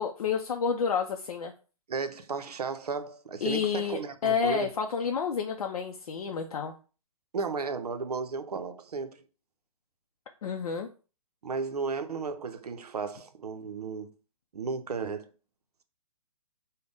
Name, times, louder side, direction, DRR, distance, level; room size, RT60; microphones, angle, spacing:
voice 1, 0.0-1.5 3.4-6.7 10.4-10.9, left 6 dB, 70° left, 0.5 m, -30 dB
voice 2, 1.9-4.7 7.3-9.2 11.4-14.1 14.5-15.3, right 4 dB, 85° right, 0.5 m, -34 dB
3.4 x 2.1 x 3.7 m
hypercardioid pair, 130°, 19 cm